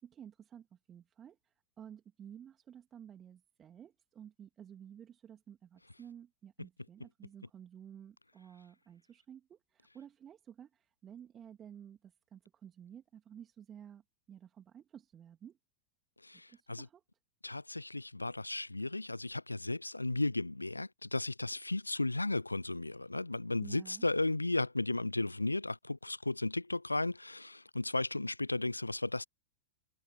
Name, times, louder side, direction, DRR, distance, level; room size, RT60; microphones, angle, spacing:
voice 1, 0.0-14.0 14.3-15.6 16.5-17.0 23.6-24.1, right 9 dB, 25° right, 3.0 m, -53 dB
voice 2, 16.2-16.9 17.4-29.2, left 2 dB, 85° left, 0.7 m, -35 dB
figure-of-eight pair, 90°, 0 cm